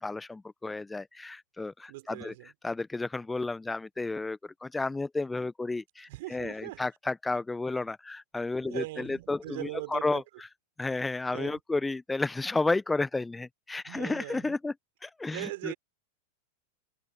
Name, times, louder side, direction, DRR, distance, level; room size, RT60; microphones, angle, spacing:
voice 1, 0.0-2.3 2.6-10.2 10.8-14.7 15.0-15.7, left 3 dB, 10° left, 1.0 m, -32 dB
voice 2, 1.9-2.5 6.1-6.8 8.6-10.2 11.3-11.6 13.9-14.6 15.3-15.7, right 20 dB, 50° right, 5.7 m, -40 dB
open air
figure-of-eight pair, 90°, 0 cm